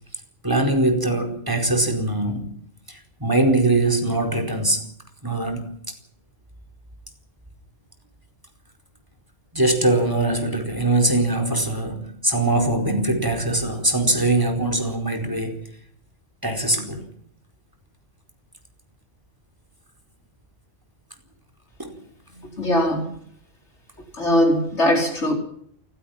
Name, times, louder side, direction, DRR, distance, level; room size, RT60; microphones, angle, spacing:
voice 1, 0.4-2.5 2.9-4.9 5.2-5.7 9.5-15.6 16.4-17.0 21.8-22.0, right 2 dB, 20° right, 4.7 m, -22 dB
voice 2, 22.6-23.1 24.2-25.3, left 1 dB, 85° left, 5.3 m, -20 dB
29.0 x 16.0 x 5.9 m
omnidirectional pair, 1.1 m